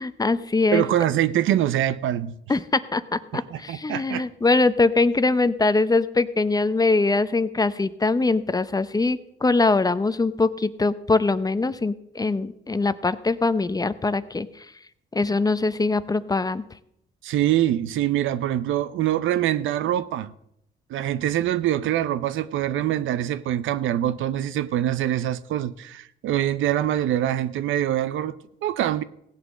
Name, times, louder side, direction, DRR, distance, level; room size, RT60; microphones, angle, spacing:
voice 1, 0.0-0.8 2.5-14.7 15.1-16.6, left 3 dB, 20° left, 0.7 m, -22 dB
voice 2, 0.7-2.3 3.3-4.3 17.2-20.3 20.9-28.4 28.6-29.0, right 12 dB, 80° right, 0.7 m, -24 dB
16.5 x 8.0 x 6.3 m
cardioid pair, 90°, 20 cm